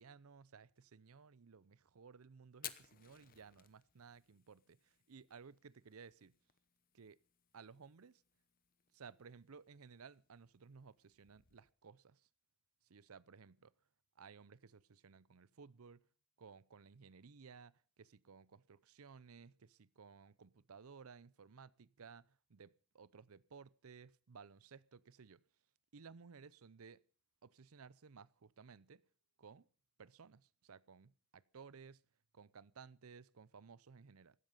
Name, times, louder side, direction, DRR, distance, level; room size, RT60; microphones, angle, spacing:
voice 1, 0.0-6.3 6.9-7.2 7.5-8.2 8.9-12.2 12.9-13.7 14.2-16.0 16.4-25.4 25.9-27.0 27.4-29.0 29.4-29.7 30.0-32.0 32.3-34.4, right 5 dB, 85° right, 0.6 m, -58 dB
Fire, 2.5-11.7, left 12 dB, 40° left, 1.0 m, -59 dB
16.5 x 13.0 x 5.5 m
head